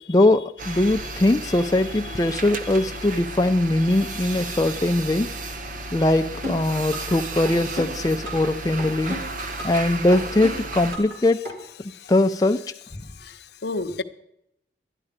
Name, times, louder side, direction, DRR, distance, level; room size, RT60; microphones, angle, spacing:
voice 1, 0.1-5.3 5.9-9.2 9.6-11.5 12.1-12.6, left 1 dB, 20° left, 5 dB, 0.4 m, -21 dB
sound 1, 0.6-11.0, right 2 dB, 50° right, 0.9 m, -34 dB
voice 2, 1.8-2.4 2.7-2.9 9.4-9.7 11.8-12.1 13.0-14.0, left 3 dB, 65° left, 10 dB, 0.7 m, -35 dB
sound 2, 6.4-7.2 7.4-8.5 8.8-9.8 10.1-11.2 11.4-11.5, left 1 dB, 70° right, 3.9 m, -34 dB
12.0 x 11.0 x 5.0 m, 0.76 s
head